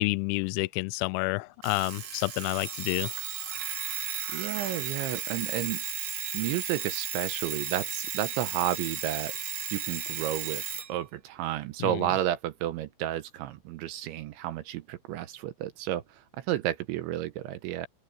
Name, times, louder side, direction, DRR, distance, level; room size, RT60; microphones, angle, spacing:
voice 1, 0.0-3.1 11.8-11.9, left 24 dB, 85° left, 2.8 m, -29 dB
Alarm, 1.6-10.9, right 8 dB, 55° right, 2.4 m, -35 dB
voice 2, 4.3-5.8 6.3-9.3 9.7-10.6 10.9-17.9, right 13 dB, 80° right, 3.1 m, -32 dB
open air
omnidirectional pair, 5.7 m